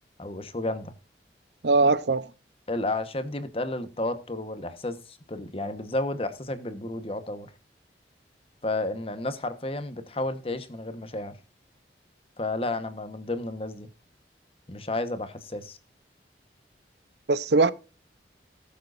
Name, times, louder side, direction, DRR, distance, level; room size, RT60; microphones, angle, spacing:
voice 1, 0.2-0.9 2.7-7.5 8.6-11.4 12.4-13.9 14.7-15.8, left 2 dB, 30° left, 1.2 m, -32 dB
voice 2, 1.6-2.3 17.3-17.7, right 3 dB, 70° right, 0.7 m, -21 dB
18.5 x 7.5 x 2.6 m
head